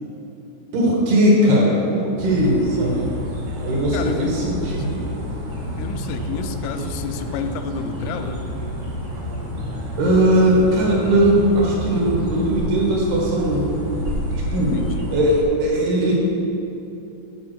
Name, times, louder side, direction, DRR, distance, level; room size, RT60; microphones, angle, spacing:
voice 1, 0.7-3.0 3.6-5.1 10.0-13.7 14.5-14.7 15.1-16.2, right 1 dB, 70° right, -3 dB, 3.6 m, -19 dB
sound 1, 2.2-15.4, equal, 50° right, 1.9 m, -29 dB
sound 2, 2.7-15.3, right 3 dB, 90° right, 1.8 m, -39 dB
voice 2, 3.9-4.4 5.7-8.4 14.5-15.1, left 6 dB, 90° left, 8 dB, 2.9 m, -30 dB
9.9 x 5.4 x 6.3 m, 2.7 s
omnidirectional pair, 5.0 m